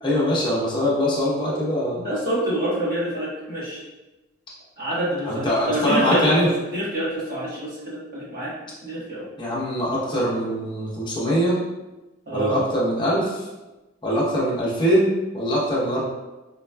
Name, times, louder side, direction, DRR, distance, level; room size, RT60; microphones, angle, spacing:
voice 1, 0.0-2.1 5.2-6.5 9.4-11.6 12.3-13.4 14.0-16.0, equal, 25° left, -6 dB, 0.8 m, -22 dB
voice 2, 2.0-3.8 4.8-6.4 6.6-8.5 8.8-9.2 12.3-12.6, right 1 dB, 50° right, -8 dB, 1.1 m, -26 dB
4.0 x 2.2 x 2.2 m, 1.1 s
head